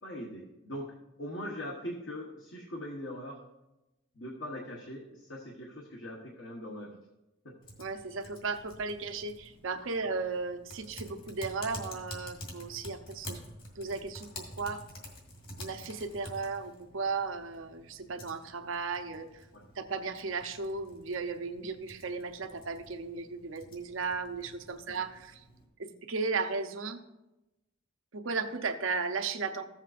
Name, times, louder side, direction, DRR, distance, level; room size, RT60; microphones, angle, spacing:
voice 1, 0.0-3.4 4.1-7.1 7.4-7.6 19.5-19.7 24.9-25.0, equal, 60° left, -1 dB, 1.1 m, -41 dB
Typing, 7.6-25.6, left 1 dB, 45° left, 2.1 m, -49 dB
voice 2, 7.8-13.4 13.7-14.8 15.6-19.5 19.7-25.4 25.8-27.0 28.1-29.6, right 4 dB, 80° right, 7 dB, 0.7 m, -35 dB
15.0 x 7.3 x 2.5 m, 0.98 s
head